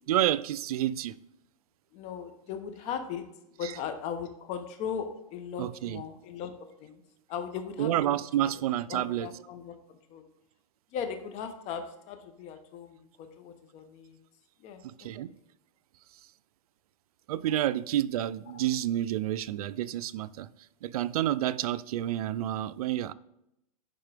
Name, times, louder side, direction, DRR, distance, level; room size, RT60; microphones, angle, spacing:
voice 1, 0.1-1.2 3.6-3.7 5.6-6.0 7.8-9.3 14.8-15.3 17.3-20.5 20.8-23.1, right 12 dB, 80° right, 0.4 m, -29 dB
voice 2, 1.9-3.2 3.5-6.5 6.8-7.0 7.3-7.9 8.4-8.5 8.9-10.2 10.9-14.2 14.6-15.3 18.5-18.6, left 7 dB, 35° left, 0.9 m, -38 dB
10.5 x 3.7 x 3.4 m
hypercardioid pair, 140°, 19 cm